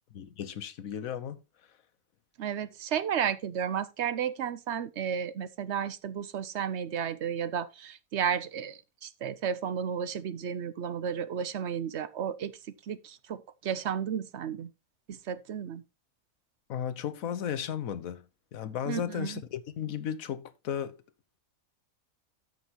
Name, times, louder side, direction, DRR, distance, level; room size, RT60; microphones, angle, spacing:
voice 1, 0.1-1.4 16.7-18.2 18.5-20.9, left 9 dB, 75° left, 1.3 m, -35 dB
voice 2, 2.4-12.5 12.9-14.7 15.1-15.8 18.9-19.4, right 8 dB, 60° right, 0.9 m, -33 dB
13.5 x 6.6 x 2.9 m
omnidirectional pair, 1.5 m